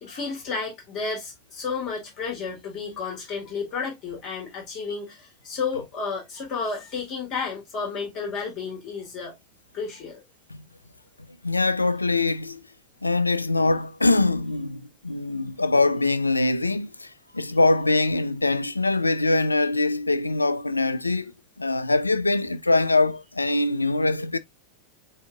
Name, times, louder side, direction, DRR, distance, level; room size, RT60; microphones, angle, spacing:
voice 1, 0.0-9.3 9.7-10.2, left 5 dB, 35° left, 2.3 m, -32 dB
voice 2, 11.4-12.6 13.0-21.3 21.6-24.4, left 2 dB, 80° left, 0.4 m, -23 dB
7.9 x 2.7 x 2.3 m
figure-of-eight pair, 90°, 0 cm